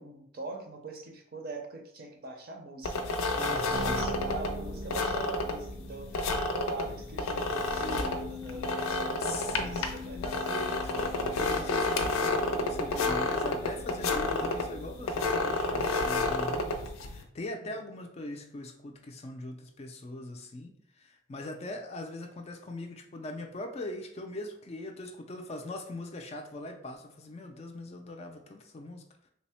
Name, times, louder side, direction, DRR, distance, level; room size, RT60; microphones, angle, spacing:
voice 1, 0.0-10.4 17.6-17.7, right 2 dB, 45° right, 3 dB, 0.5 m, -43 dB
sound 1, 2.8-17.2, left 2 dB, 85° left, 0.5 m, -31 dB
voice 2, 3.3-4.2 7.8-8.1 9.2-29.3, left 2 dB, 30° left, 3 dB, 0.3 m, -41 dB
sound 2, 3.7-16.0, left 1 dB, 85° right, 0.8 m, -44 dB
3.3 x 2.0 x 4.2 m, 0.67 s
head